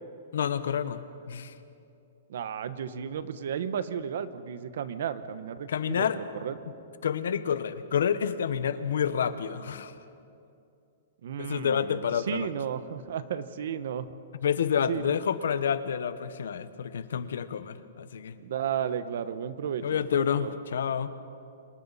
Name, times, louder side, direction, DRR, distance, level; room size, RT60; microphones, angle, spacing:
voice 1, 0.3-1.0 1.3-1.5 5.7-6.2 7.0-9.9 11.4-12.5 14.4-18.4 19.8-21.1, left 8 dB, 75° left, 12 dB, 1.1 m, -28 dB
voice 2, 2.3-6.6 11.2-14.1 14.9-15.2 18.4-20.5, right 8 dB, 55° right, 13 dB, 1.0 m, -34 dB
30.0 x 26.5 x 4.2 m, 2.6 s
hypercardioid pair, 180°, 0 cm